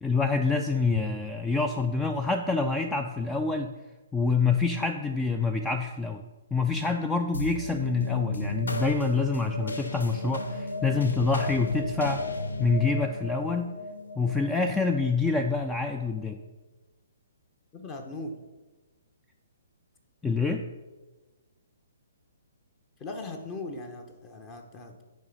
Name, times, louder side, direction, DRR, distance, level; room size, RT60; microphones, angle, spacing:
voice 1, 0.0-3.7 4.1-6.2 6.5-12.2 12.6-13.7 14.2-16.4 20.2-20.6, left 4 dB, 10° left, 5 dB, 0.3 m, -26 dB
sound 1, 7.3-16.1, left 1 dB, 75° left, 0.6 m, -34 dB
voice 2, 17.7-18.4 23.0-25.0, left 2 dB, 25° left, 4 dB, 0.8 m, -39 dB
8.8 x 3.3 x 5.2 m, 1.2 s
figure-of-eight pair, 130°, 0 cm